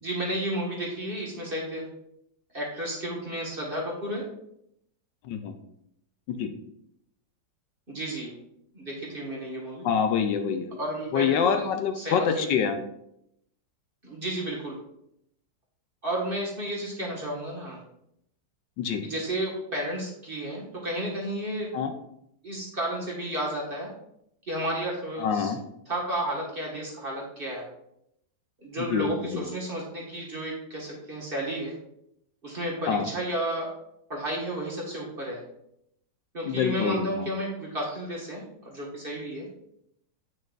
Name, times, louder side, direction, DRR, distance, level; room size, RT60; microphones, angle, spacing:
voice 1, 0.0-1.9 2.5-4.3 7.9-8.3 8.7-9.9 10.8-11.7 11.9-12.5 14.0-14.8 16.0-17.8 19.0-21.7 22.4-23.9 24.5-25.5 25.9-27.7 28.6-31.7 32.4-33.7 34.1-35.4 36.3-39.5, right 1 dB, 30° right, -3 dB, 1.8 m, -32 dB
voice 2, 5.2-5.6 6.3-6.5 9.8-10.7 11.1-12.8 18.8-19.0 21.7-21.9 25.2-25.6 28.9-29.4 32.9-33.1 36.4-37.3, left 7 dB, 75° left, 7 dB, 1.3 m, -26 dB
8.7 x 6.4 x 2.5 m, 0.75 s
omnidirectional pair, 2.0 m